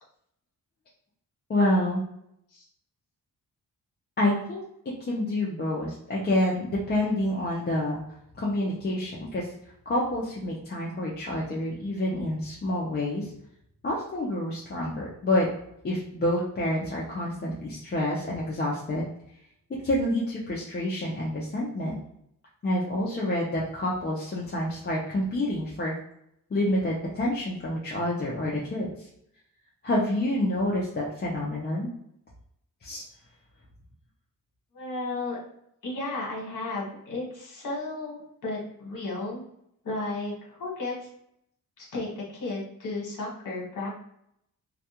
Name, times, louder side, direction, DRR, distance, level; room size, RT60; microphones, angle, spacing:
voice 1, 1.5-2.0 4.2-4.6 5.1-8.0 8.3-9.5 9.9-13.3 13.8-15.5 15.8-19.1 19.8-22.0 22.6-25.9 26.5-29.1 29.8-31.9 32.8-33.0, left 1 dB, 30° left, -5 dB, 0.5 m, -28 dB
voice 2, 34.7-35.4 35.8-39.4 39.8-41.0 41.8-44.0, left 2 dB, 65° left, -3 dB, 1.3 m, -34 dB
2.3 x 2.2 x 2.8 m, 0.74 s
cardioid pair, 110°, 33 cm